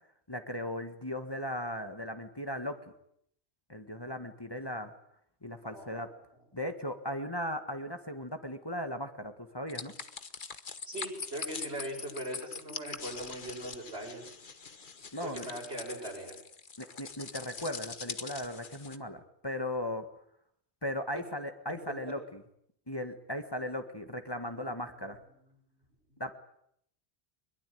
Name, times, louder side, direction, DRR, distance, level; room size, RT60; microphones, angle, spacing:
voice 1, 0.3-2.8 3.7-4.9 5.4-6.1 6.5-9.9 15.1-15.5 16.8-20.0 20.8-22.4 22.9-25.2 26.2-26.3, left 1 dB, 20° left, 6 dB, 1.7 m, -37 dB
voice 2, 5.6-6.1 10.8-14.3 15.2-16.4 24.4-24.8 25.4-25.5, right 1 dB, 75° right, 0 dB, 7.9 m, -40 dB
sound 1, 9.7-19.0, left 5 dB, 50° left, 1.4 m, -43 dB
22.5 x 22.0 x 9.4 m, 0.71 s
omnidirectional pair, 1.1 m